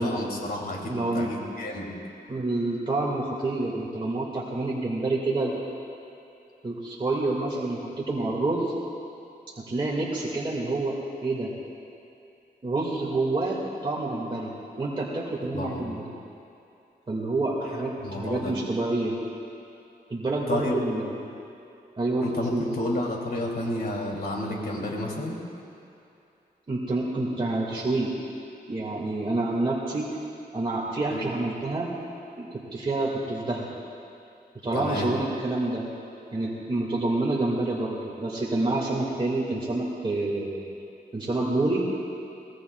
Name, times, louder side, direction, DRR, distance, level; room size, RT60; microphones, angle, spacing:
voice 1, 0.0-1.9 15.5-15.8 18.0-18.5 20.5-20.7 22.2-25.4 31.1-31.2 34.7-35.1, left 1 dB, 65° left, -2 dB, 2.9 m, -31 dB
voice 2, 0.9-1.3 2.3-5.6 6.6-8.7 9.7-10.9 11.2-11.5 12.6-16.1 17.1-19.2 20.1-21.1 22.0-22.6 26.7-28.1 28.7-30.1 30.5-31.9 32.4-33.7 34.6-35.8 36.3-40.6 41.1-41.9, right 2 dB, 30° right, -5 dB, 2.0 m, -28 dB
23.0 x 19.5 x 2.3 m, 2.7 s
wide cardioid pair, 95°, 17 cm